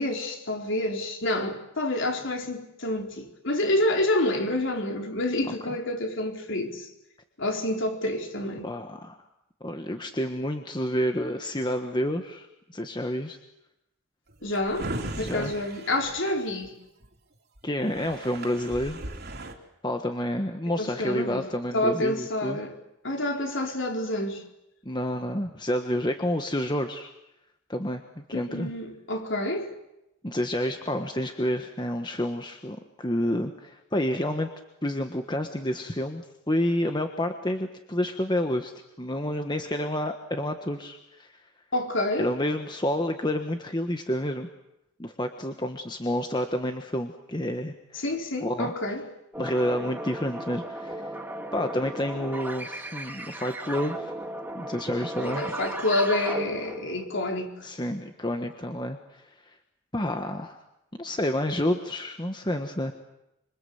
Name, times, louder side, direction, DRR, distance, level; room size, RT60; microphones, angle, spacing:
voice 1, 0.0-6.9 7.4-8.7 14.4-16.7 20.8-22.7 23.0-24.4 28.3-29.7 41.7-42.3 47.9-49.0 55.2-57.7, left 1 dB, 55° left, 4.2 m, -28 dB
voice 2, 8.6-9.2 9.6-13.4 15.2-15.5 17.6-19.0 19.8-22.6 24.8-27.1 27.7-28.7 30.2-34.5 34.8-38.7 39.0-41.3 42.2-44.5 45.0-48.0 48.4-48.7 49.4-51.1 51.5-54.1 54.5-55.5 57.6-59.6 59.9-60.6 61.0-62.9, left 1 dB, 20° left, 1.4 m, -29 dB
Drawer open or close, 14.3-17.0 17.6-17.7 17.8-19.5, right 1 dB, 45° right, 3.5 m, -37 dB
sound 1, 49.3-57.0, right 1 dB, 10° right, 2.2 m, -36 dB
26.5 x 26.0 x 8.0 m
head